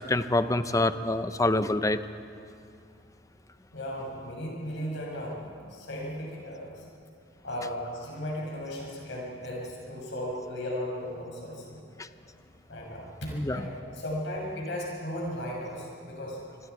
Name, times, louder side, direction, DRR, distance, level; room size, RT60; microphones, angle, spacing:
voice 1, 0.0-2.0 12.0-12.1 13.3-13.6, left 2 dB, 15° left, 11 dB, 0.6 m, -26 dB
voice 2, 3.7-5.4 5.7-6.8 7.4-11.8 12.7-13.1 13.5-16.5, equal, 65° left, -2 dB, 6.8 m, -36 dB
26.5 x 21.5 x 4.7 m, 2.6 s
head